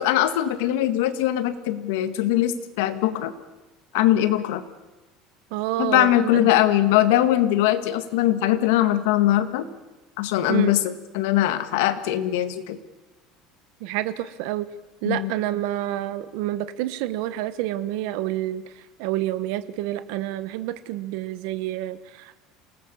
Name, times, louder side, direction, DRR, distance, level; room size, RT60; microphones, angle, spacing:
voice 1, 0.0-3.3 3.9-4.6 5.8-9.7 10.2-12.8 15.0-15.3, left 13 dB, 75° left, 11 dB, 1.8 m, -21 dB
voice 2, 5.5-6.5 10.5-10.8 13.8-14.7 15.0-18.6 19.0-22.3, right 14 dB, 60° right, 13 dB, 1.1 m, -28 dB
28.0 x 19.0 x 7.1 m, 1.1 s
cardioid pair, 180°, 0 cm